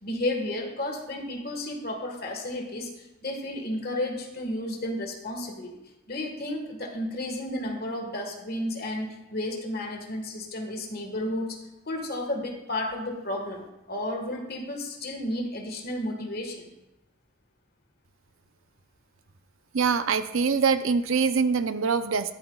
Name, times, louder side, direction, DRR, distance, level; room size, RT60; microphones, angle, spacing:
voice 1, 0.0-5.8 6.1-11.6 11.8-16.7, left 1 dB, 45° left, 2 dB, 1.5 m, -32 dB
voice 2, 19.7-22.3, right 5 dB, 70° right, 11 dB, 0.6 m, -24 dB
12.0 x 11.5 x 2.3 m, 0.95 s
head